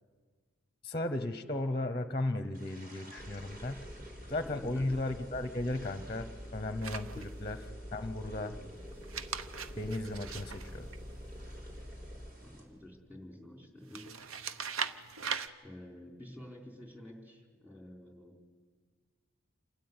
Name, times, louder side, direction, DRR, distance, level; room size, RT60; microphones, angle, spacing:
voice 1, 0.8-3.8 4.3-7.6 7.9-8.6 9.8-10.9, left 2 dB, 20° left, 10 dB, 0.8 m, -35 dB
sound 1, 2.5-12.6, right 1 dB, 50° right, 4.4 m, -56 dB
sound 2, 3.2-12.3, equal, 25° right, 2.0 m, -47 dB
voice 2, 4.4-5.0 7.1-7.2 8.4-8.6 12.4-14.1 15.6-18.4, left 1 dB, 10° right, 1 dB, 3.8 m, -50 dB
sound 3, 6.8-7.6 8.9-11.5 13.9-15.5, right 6 dB, 80° right, 0.9 m, -40 dB
28.0 x 13.0 x 9.6 m, 1.5 s
head